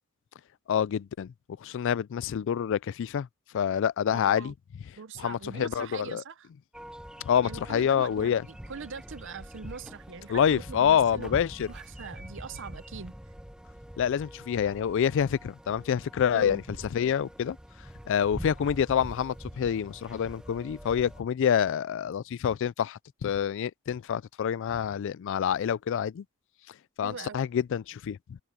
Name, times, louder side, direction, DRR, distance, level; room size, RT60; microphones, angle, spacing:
voice 1, 0.7-1.3 1.6-3.3 3.5-4.5 5.2-6.2 7.2-8.5 10.3-11.7 14.0-16.6 16.9-17.6 18.1-26.2 27.0-28.4, left 8 dB, 60° left, 0.3 m, -27 dB
voice 2, 4.1-4.5 4.9-6.5 7.4-11.3 11.7-13.1 16.3-16.6 27.0-27.4, right 5 dB, 60° right, 0.7 m, -42 dB
sound 1, 6.7-21.2, equal, 5° right, 0.7 m, -44 dB
head